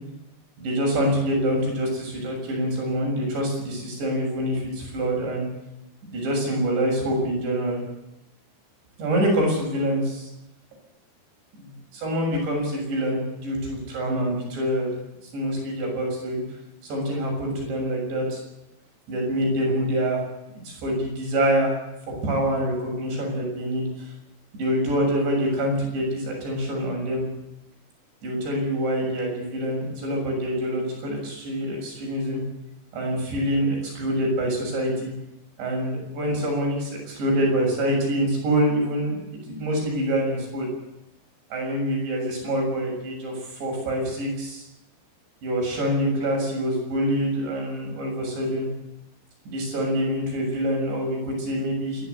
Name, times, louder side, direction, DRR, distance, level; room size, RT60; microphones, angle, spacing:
voice 1, 0.6-5.5 6.1-7.8 9.0-10.3 11.6-14.9 15.3-16.4 16.8-18.4 19.1-20.2 20.7-21.8 22.1-24.1 24.5-27.3 28.2-32.4 32.9-35.1 35.6-40.7 41.5-44.6 45.4-48.7 49.5-52.1, equal, 80° right, 0 dB, 9.3 m, -25 dB
27.0 x 12.0 x 8.3 m, 0.91 s
omnidirectional pair, 5.0 m